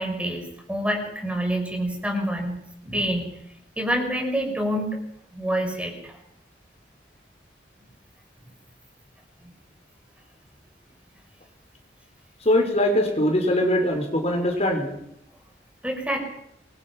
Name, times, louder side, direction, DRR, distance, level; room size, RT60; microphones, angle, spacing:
voice 1, 0.0-3.3 3.8-5.0 5.3-6.1 15.8-16.2, equal, 5° right, 2 dB, 5.5 m, -27 dB
voice 2, 12.5-14.9, left 1 dB, 35° left, 3 dB, 5.2 m, -22 dB
26.5 x 23.0 x 6.2 m, 0.77 s
head